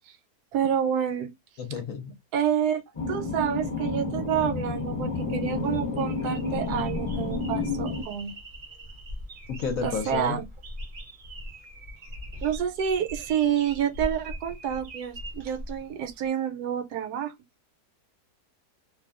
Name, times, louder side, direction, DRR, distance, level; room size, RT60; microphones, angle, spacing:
voice 1, 0.5-1.3 2.3-8.3 9.8-10.5 12.4-17.3, right 9 dB, 75° right, 1.1 m, -28 dB
voice 2, 1.6-2.1 9.5-10.4, left 6 dB, 65° left, 0.9 m, -31 dB
sound 1, 2.9-8.0, left 3 dB, 30° left, 0.6 m, -30 dB
sound 2, 5.4-16.3, equal, 50° right, 0.6 m, -41 dB
2.6 x 2.2 x 2.4 m
omnidirectional pair, 1.7 m